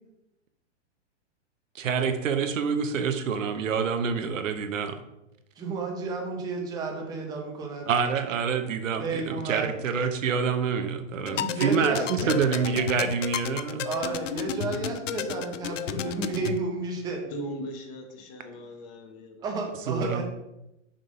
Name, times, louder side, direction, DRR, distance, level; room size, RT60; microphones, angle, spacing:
voice 1, 1.7-5.0 7.9-13.9 19.9-20.2, right 6 dB, 90° right, 8 dB, 1.0 m, -27 dB
voice 2, 5.6-7.9 9.0-9.7 11.3-12.4 13.8-17.2 19.4-20.2, right 4 dB, 10° right, 1 dB, 0.7 m, -32 dB
sound 1, 11.2-16.6, left 10 dB, 75° left, 0.6 m, -33 dB
voice 3, 17.3-19.5, equal, 25° left, 3 dB, 0.8 m, -39 dB
6.4 x 3.8 x 5.2 m, 0.90 s
hypercardioid pair, 155°, 38 cm